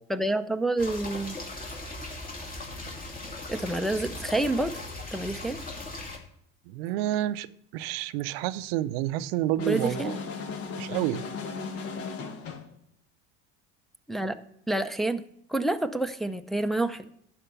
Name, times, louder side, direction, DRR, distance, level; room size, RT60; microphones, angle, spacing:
voice 1, 0.1-1.4 3.5-4.8 5.1-5.6 9.7-10.1 14.1-14.4 14.7-15.2 15.5-17.1, right 2 dB, ahead, 0.5 m, -28 dB
sound 1, 0.8-6.2, left 2 dB, 30° left, 2.5 m, -38 dB
voice 2, 6.7-7.5 7.7-10.2 10.8-11.2, right 14 dB, 90° right, 0.6 m, -29 dB
sound 2, 9.6-12.7, left 4 dB, 55° left, 1.4 m, -36 dB
11.5 x 4.4 x 8.1 m
supercardioid pair, 115°, 29 cm